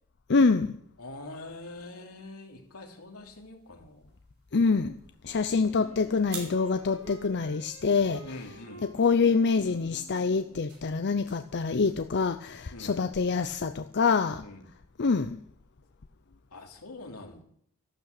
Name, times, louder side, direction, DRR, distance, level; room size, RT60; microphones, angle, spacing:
voice 1, 0.3-0.8 4.5-4.9 5.2-8.2 8.9-14.4 15.0-15.4, left 4 dB, 50° left, 0.6 m, -25 dB
voice 2, 1.0-4.1 5.4-5.6 8.2-8.9 12.7-13.1 14.4-14.7 16.5-17.4, left 2 dB, 85° left, 3.0 m, -44 dB
sound 1, 1.3-12.0, right 5 dB, 50° right, 5.2 m, -52 dB
Wind instrument woodwind instrument, 5.6-10.7, right 2 dB, 35° right, 8.0 m, -50 dB
13.5 x 12.0 x 6.6 m
head